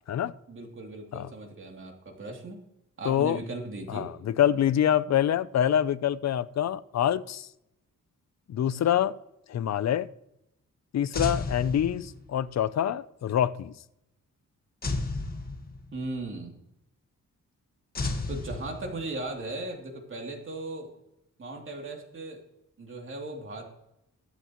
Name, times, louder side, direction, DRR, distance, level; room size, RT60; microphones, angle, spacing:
voice 1, 0.5-2.6 3.0-4.1 15.9-16.6 18.3-20.9 21.4-22.4 22.8-23.6, right 2 dB, 40° right, 2.9 m, -37 dB
voice 2, 3.0-3.4 3.9-7.5 8.5-9.2 9.5-10.1 10.9-13.7, left 10 dB, 55° left, 0.6 m, -26 dB
sound 1, 11.1-12.4 14.8-16.1 17.9-19.2, left 3 dB, 30° left, 1.6 m, -33 dB
23.0 x 8.0 x 3.1 m
wide cardioid pair, 145°, 31 cm